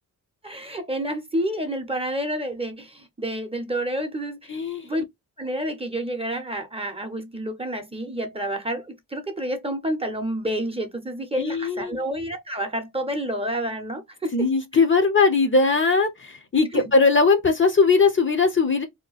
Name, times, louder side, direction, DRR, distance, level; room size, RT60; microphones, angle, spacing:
voice 1, 0.4-4.5 4.8-5.0 5.4-14.5 16.7-16.8, right 1 dB, 15° right, 0.7 m, -29 dB
voice 2, 4.5-4.9 11.4-12.0 14.3-18.9, left 4 dB, 35° left, 0.7 m, -20 dB
2.8 x 2.2 x 3.9 m
cardioid pair, 95°, 34 cm